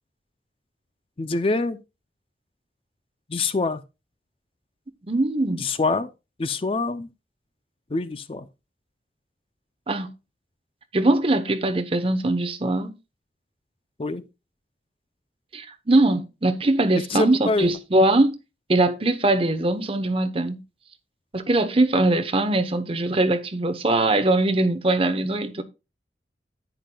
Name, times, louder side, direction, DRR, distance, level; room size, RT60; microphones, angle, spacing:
voice 1, 1.2-1.8 3.3-3.8 5.6-6.1 6.4-7.1 7.9-8.5 14.0-14.2 16.9-17.7, left 3 dB, 30° left, 0.4 m, -25 dB
voice 2, 5.1-5.7 9.9-10.1 10.9-12.9 15.5-18.4 18.7-20.6 21.3-25.6, right 2 dB, 30° right, 0.8 m, -21 dB
10.0 x 9.3 x 2.3 m
head